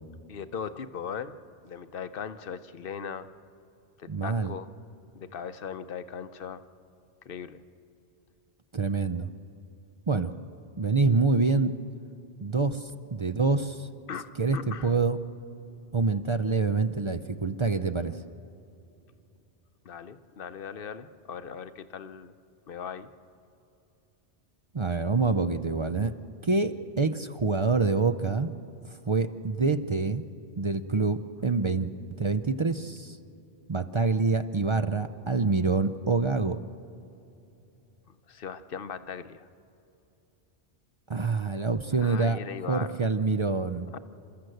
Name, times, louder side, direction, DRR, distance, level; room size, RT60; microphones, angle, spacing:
voice 1, 0.3-1.4 1.6-3.3 4.0-4.7 5.1-6.6 7.2-7.6 14.1-14.9 19.8-22.3 22.7-23.1 38.1-39.5 41.9-43.1 43.9-44.0, left 7 dB, 60° left, 12 dB, 0.9 m, -39 dB
voice 2, 4.1-4.5 8.7-9.3 10.1-10.3 10.8-11.7 12.4-13.9 14.4-15.2 15.9-18.2 24.7-26.1 26.4-28.5 28.9-30.2 30.6-33.2 33.7-36.6 41.1-42.4 42.7-43.9, right 4 dB, 35° right, 11 dB, 0.5 m, -26 dB
29.0 x 13.5 x 7.8 m, 2.8 s
omnidirectional pair, 1.1 m